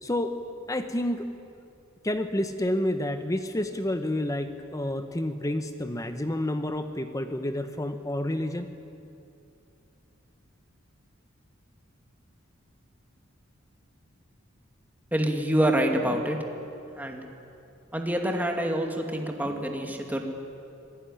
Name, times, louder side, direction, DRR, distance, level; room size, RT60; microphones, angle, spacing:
voice 1, 0.0-0.3 0.7-1.3 2.0-8.7, left 1 dB, 15° left, 8 dB, 0.9 m, -29 dB
voice 2, 15.1-16.4 17.0-17.3 17.9-20.2, right 1 dB, 10° right, 2 dB, 2.3 m, -26 dB
25.5 x 18.5 x 9.8 m, 2.7 s
head